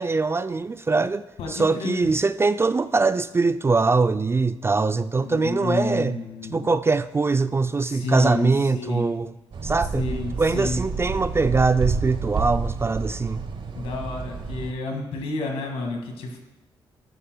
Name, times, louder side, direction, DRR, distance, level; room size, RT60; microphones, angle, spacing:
voice 1, 0.0-6.2 6.5-9.4 9.6-10.1 10.4-13.4, right 4 dB, 25° right, 0.4 m, -22 dB
voice 2, 1.4-2.1 5.2-6.7 7.8-9.1 9.9-10.8 13.8-16.4, left 3 dB, 80° left, 1.9 m, -30 dB
sound 1, 9.5-14.7, right 4 dB, 55° right, 1.0 m, -30 dB
14.0 x 9.9 x 2.2 m
supercardioid pair, 60°, 10 cm